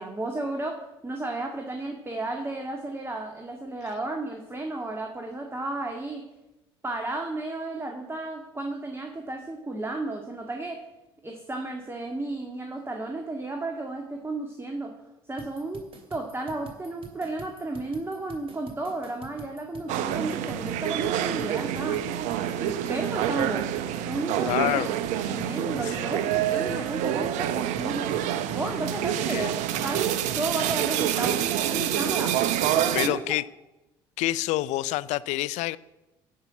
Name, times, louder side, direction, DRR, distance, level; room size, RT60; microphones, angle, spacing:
voice 1, 0.0-6.2 6.8-10.8 11.2-14.9 15.3-22.0 22.5-23.7 24.1-28.1 28.5-33.2, right 2 dB, 20° right, 1.9 m, -33 dB
sound 1, 15.4-31.4, right 3 dB, 45° right, 2.7 m, -46 dB
sound 2, 19.9-33.1, right 11 dB, 70° right, 0.8 m, -27 dB
voice 2, 24.5-24.9 25.8-25.9 29.3-29.5 32.9-33.4 34.2-35.8, left 17 dB, 65° left, 0.5 m, -27 dB
16.0 x 5.8 x 8.1 m
hypercardioid pair, 60°, 13 cm